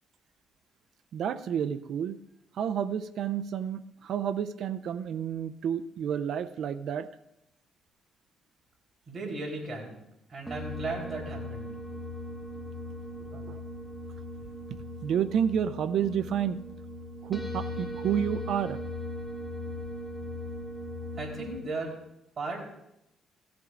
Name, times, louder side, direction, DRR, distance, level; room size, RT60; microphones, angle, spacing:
voice 1, 1.1-2.2 2.6-7.1 13.3-13.6 15.0-16.6 17.2-18.8, right 8 dB, 70° right, 13 dB, 0.5 m, -30 dB
voice 2, 9.1-10.0 10.3-11.7 21.2-22.0 22.4-22.6, right 2 dB, 45° right, 0 dB, 3.7 m, -36 dB
sound 1, 10.5-21.6, left 1 dB, 5° right, 2.0 m, -39 dB
16.5 x 14.0 x 2.5 m, 0.83 s
cardioid pair, 90°, 0 cm